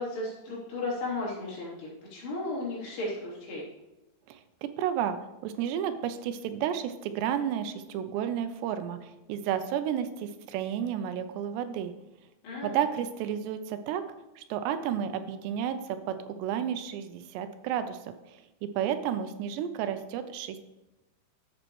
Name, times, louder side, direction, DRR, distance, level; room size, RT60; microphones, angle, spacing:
voice 1, 0.0-3.6 12.4-12.8, left 2 dB, 70° left, -6 dB, 5.3 m, -35 dB
voice 2, 4.3-5.2 5.4-11.9 12.6-14.0 14.4-18.0 18.8-20.6, right 9 dB, 90° right, 9 dB, 3.0 m, -31 dB
11.0 x 7.8 x 3.1 m, 1.0 s
omnidirectional pair, 4.8 m